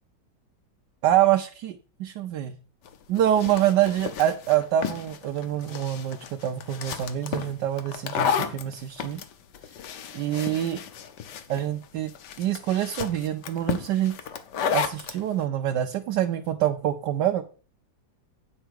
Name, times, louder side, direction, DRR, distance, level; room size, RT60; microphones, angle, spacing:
voice 1, 1.0-2.6 3.1-9.2 10.1-10.8 11.5-14.1 14.7-17.4, right 11 dB, 70° right, 5 dB, 1.2 m, -26 dB
sound 1, 2.8-15.2, left 7 dB, 65° left, 1.4 m, -33 dB
9.0 x 4.6 x 6.3 m, 0.37 s
omnidirectional pair, 2.1 m